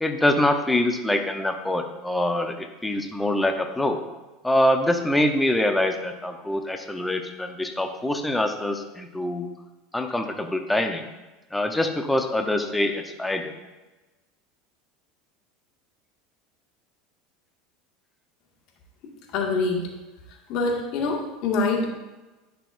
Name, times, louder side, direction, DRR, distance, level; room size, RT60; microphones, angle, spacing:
voice 1, 0.0-4.0 4.4-9.5 9.9-11.0 11.5-13.5, left 1 dB, 5° left, 5 dB, 0.8 m, -24 dB
voice 2, 19.3-19.9 20.5-21.9, left 3 dB, 55° left, 0 dB, 1.8 m, -25 dB
11.0 x 5.8 x 2.6 m, 1.1 s
supercardioid pair, 110°, 0 cm